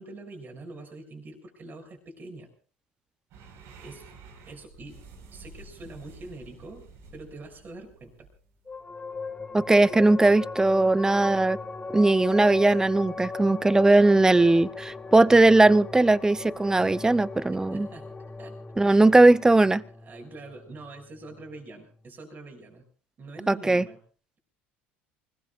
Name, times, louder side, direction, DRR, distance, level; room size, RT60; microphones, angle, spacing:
voice 1, 0.0-2.5 3.8-4.0 4.4-5.0 5.3-6.9 7.1-8.3 17.7-18.1 18.4-18.6 18.9-19.1 20.0-22.8 23.2-24.0, right 2 dB, 35° right, 6.7 m, -44 dB
sound 1, 3.3-8.8, right 4 dB, 60° right, 5.1 m, -50 dB
sound 2, 8.7-21.5, left 3 dB, 20° left, 2.0 m, -38 dB
voice 2, 9.5-11.6 11.9-17.9 18.8-19.8 23.5-23.8, right 2 dB, 10° right, 0.8 m, -19 dB
28.0 x 20.0 x 2.5 m
hypercardioid pair, 70°, 6 cm